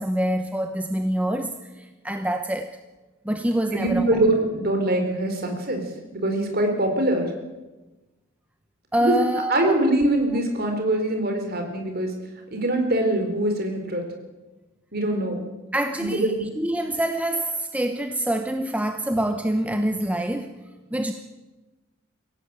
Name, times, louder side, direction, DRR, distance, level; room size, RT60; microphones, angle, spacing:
voice 1, 0.0-2.8 3.2-4.2 8.9-9.8 15.7-20.5 20.9-21.1, right 1 dB, 5° right, 6 dB, 0.9 m, -26 dB
voice 2, 3.7-5.8 6.1-7.3 9.0-9.2 9.5-12.1 12.5-14.0 14.9-15.4 16.0-16.5, right 1 dB, 45° right, 4 dB, 4.3 m, -23 dB
23.5 x 17.0 x 8.9 m, 1.1 s
head